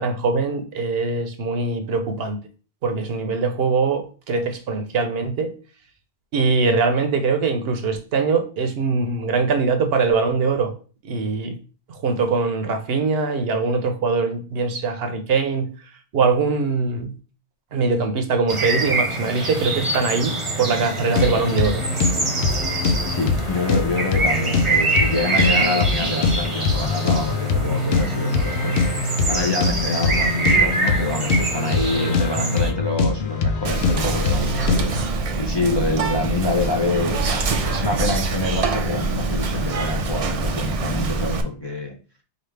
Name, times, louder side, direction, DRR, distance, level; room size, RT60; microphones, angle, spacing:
voice 1, 0.0-2.4 2.8-5.5 6.3-10.7 11.0-11.6 12.0-15.7 16.1-17.1 17.7-21.9, right 4 dB, 70° right, 0.9 m, -22 dB
sound 1, 18.5-32.7, right 2 dB, 30° right, 0.8 m, -25 dB
sound 2, 21.0-35.0, left 4 dB, 70° left, 0.8 m, -23 dB
voice 2, 23.1-42.0, left 2 dB, 30° left, 0.5 m, -26 dB
Whispering, 33.7-41.4, right 3 dB, 50° right, 0.4 m, -24 dB
5.0 x 2.4 x 3.2 m
omnidirectional pair, 1.1 m